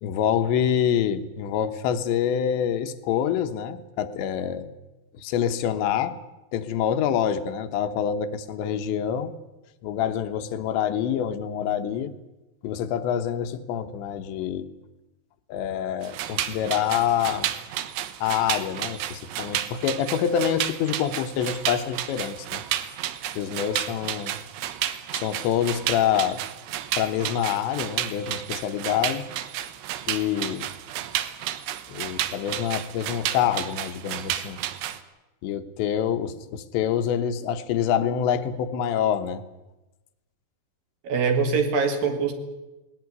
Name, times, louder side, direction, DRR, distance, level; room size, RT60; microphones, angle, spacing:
voice 1, 0.0-4.7 5.2-6.2 6.5-9.3 9.8-12.1 12.6-14.7 15.5-17.5 18.2-22.6 23.4-24.4 25.1-26.4 27.0-29.3 30.1-30.7 31.9-34.6 35.4-39.4, left 9 dB, 90° left, 9 dB, 3.4 m, -26 dB
sound 1, 16.0-35.0, right 12 dB, 80° right, 3.1 m, -32 dB
voice 2, 41.0-42.3, right 5 dB, 60° right, 6 dB, 3.6 m, -23 dB
18.5 x 18.5 x 9.6 m, 1.0 s
omnidirectional pair, 5.0 m